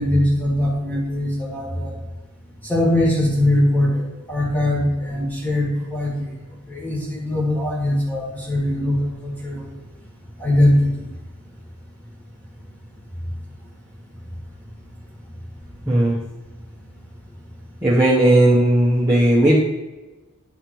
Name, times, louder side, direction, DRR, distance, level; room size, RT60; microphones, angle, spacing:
voice 1, 0.0-2.0 2.6-6.3 6.7-9.7 10.4-11.1, left 1 dB, 10° left, -3 dB, 1.8 m, -21 dB
voice 2, 15.9-16.2 17.8-19.6, right 1 dB, 10° right, -7 dB, 1.0 m, -16 dB
10.5 x 3.6 x 4.6 m, 1.1 s
head